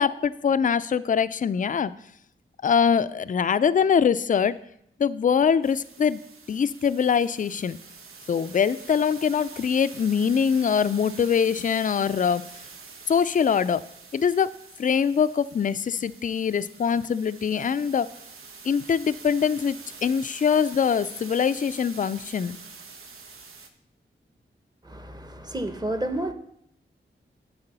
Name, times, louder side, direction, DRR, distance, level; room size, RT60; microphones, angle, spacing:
voice 1, 0.0-1.9 2.6-4.6 5.0-6.2 6.5-7.8 8.3-12.4 13.1-13.8 14.1-14.5 14.8-18.1 18.6-22.5, left 7 dB, 40° left, 14 dB, 0.4 m, -23 dB
sound 1, 5.6-23.7, right 4 dB, 85° right, 0.8 m, -46 dB
voice 2, 24.8-26.3, right 1 dB, 20° right, 9 dB, 0.9 m, -30 dB
9.8 x 3.7 x 6.8 m, 0.72 s
cardioid pair, 50°, 21 cm